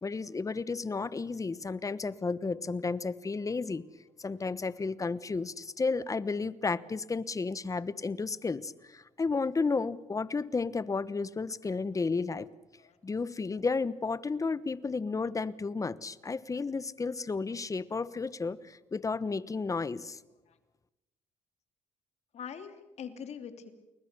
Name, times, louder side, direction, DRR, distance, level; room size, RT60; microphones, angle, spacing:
voice 1, 0.0-3.8 4.2-12.5 13.0-20.2, left 4 dB, 25° left, 17 dB, 1.1 m, -32 dB
voice 2, 22.3-23.7, left 7 dB, 60° left, 8 dB, 3.0 m, -43 dB
30.0 x 21.0 x 6.9 m, 1.0 s
cardioid pair, 85°, 13 cm